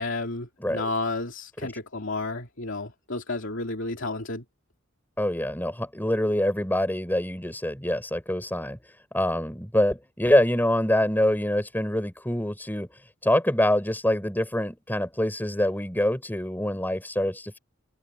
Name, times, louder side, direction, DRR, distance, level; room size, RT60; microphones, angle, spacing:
voice 1, 0.0-4.4, left 2 dB, 60° left, 2.9 m, -31 dB
voice 2, 5.2-8.8 9.1-12.9 13.2-17.6, left 1 dB, 10° left, 6.0 m, -25 dB
open air
head